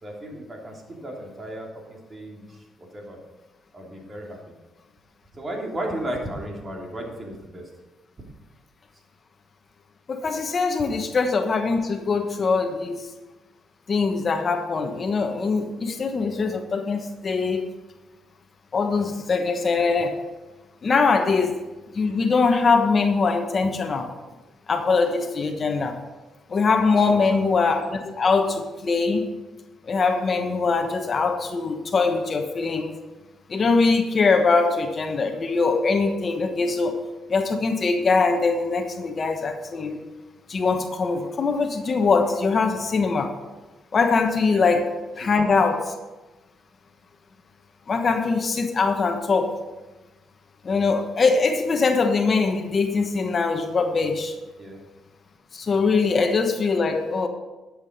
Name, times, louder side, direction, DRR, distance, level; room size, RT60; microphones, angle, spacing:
voice 1, 0.0-3.2 3.7-4.4 5.3-7.7 18.9-19.1 27.0-27.4 44.5-44.6 45.2-45.3 54.6-54.8, right 1 dB, 30° right, 0 dB, 3.1 m, -35 dB
voice 2, 10.1-13.1 13.9-17.7 18.7-20.1 20.8-21.6 21.9-24.1 24.7-26.0 26.5-29.3 29.8-32.9 33.5-37.0 37.3-40.0 40.5-43.3 43.9-44.8 45.2-45.9 47.9-49.6 50.6-54.3 55.5-57.3, left 4 dB, 40° left, 5 dB, 1.1 m, -22 dB
12.0 x 7.6 x 5.3 m, 1.2 s
cardioid pair, 90°, 0 cm